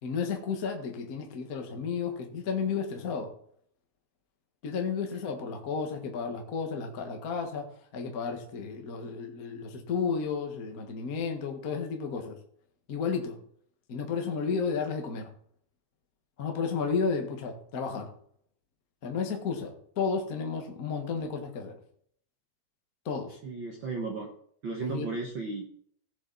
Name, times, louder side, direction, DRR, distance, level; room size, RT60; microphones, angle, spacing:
voice 1, 0.0-3.3 4.6-7.7 7.9-12.4 12.9-13.4 13.9-15.3 16.4-18.1 19.0-21.8 23.0-23.4 24.8-25.1, left 5 dB, 50° left, 4 dB, 1.0 m, -32 dB
voice 2, 23.4-24.3 24.6-25.7, right 4 dB, 75° right, 1 dB, 1.1 m, -34 dB
16.5 x 7.3 x 4.0 m, 0.64 s
omnidirectional pair, 4.1 m